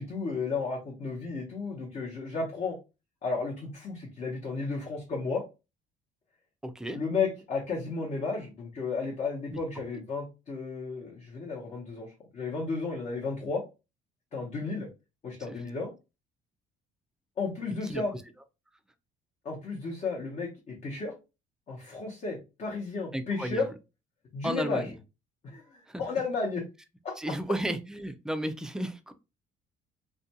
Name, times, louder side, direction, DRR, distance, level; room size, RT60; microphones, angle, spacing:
voice 1, 0.0-2.8 3.2-5.4 6.9-13.6 14.3-14.9 15.2-15.9 17.4-18.1 19.4-21.1 21.7-23.7 24.3-25.0 25.4-26.6 27.0-27.3, left 4 dB, 45° left, -3 dB, 0.8 m, -33 dB
voice 2, 6.6-7.0 17.9-18.0 23.1-23.6 24.4-24.9 25.9-26.0 27.2-29.1, right 1 dB, 5° right, 8 dB, 0.3 m, -33 dB
2.4 x 2.2 x 2.7 m, 0.27 s
cardioid pair, 110°, 17 cm